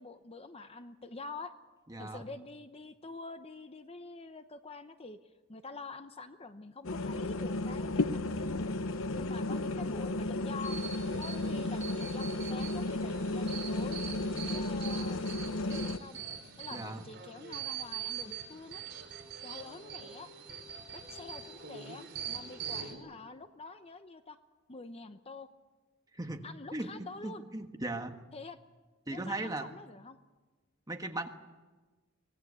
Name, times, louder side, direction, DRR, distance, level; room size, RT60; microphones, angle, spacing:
voice 1, 0.0-1.5 2.0-5.2 5.5-8.7 9.1-10.8 11.2-14.0 14.5-15.2 15.4-16.2 16.6-18.8 19.4-20.3 20.9-24.4 24.7-25.5 26.4-27.4 28.3-28.6 29.1-30.2, left 3 dB, 30° left, 9 dB, 0.9 m, -46 dB
voice 2, 1.9-2.2 16.7-17.0 26.1-28.2 29.1-29.7 30.9-31.3, right 2 dB, 20° right, 5 dB, 1.5 m, -38 dB
sound 1, 6.8-16.0, left 2 dB, 75° left, 0.8 m, -34 dB
sound 2, 10.6-22.9, right 8 dB, 55° right, 4.2 m, -43 dB
sound 3, 15.9-23.2, left 2 dB, ahead, 7.3 m, -58 dB
25.0 x 19.0 x 8.3 m, 1.2 s
head